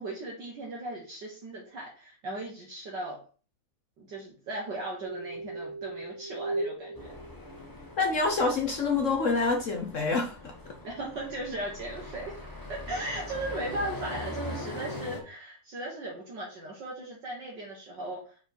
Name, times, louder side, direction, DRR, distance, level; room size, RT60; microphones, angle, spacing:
voice 1, 0.0-3.2 4.0-7.2 10.8-12.3 12.7-18.4, right 1 dB, 55° right, -4 dB, 2.0 m, -37 dB
sound 1, 5.0-8.0 8.9-9.3, right 2 dB, 75° right, 1.5 m, -37 dB
sound 2, 6.9-15.2, left 1 dB, 15° left, 0.8 m, -41 dB
voice 2, 8.0-10.5, left 3 dB, 60° left, 3 dB, 0.8 m, -27 dB
5.5 x 4.5 x 4.5 m, 0.38 s
omnidirectional pair, 2.4 m